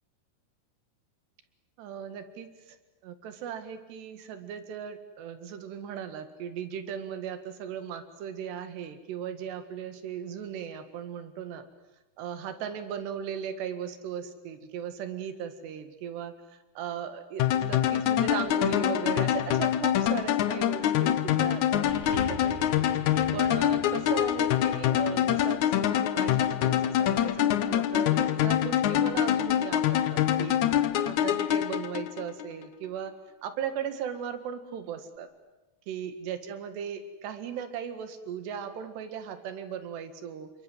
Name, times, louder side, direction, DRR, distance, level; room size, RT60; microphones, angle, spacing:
voice 1, 1.8-2.8 3.0-11.7 12.2-22.7 23.3-30.6 31.0-33.1 33.4-35.3 35.9-40.5, right 8 dB, 85° right, 9 dB, 4.0 m, -37 dB
sound 1, 17.4-32.5, left 11 dB, 75° left, 1.8 m, -25 dB
sound 2, 21.9-26.4 27.3-27.4, right 2 dB, 35° right, 5.1 m, -44 dB
28.5 x 24.0 x 7.9 m, 1.0 s
omnidirectional pair, 4.8 m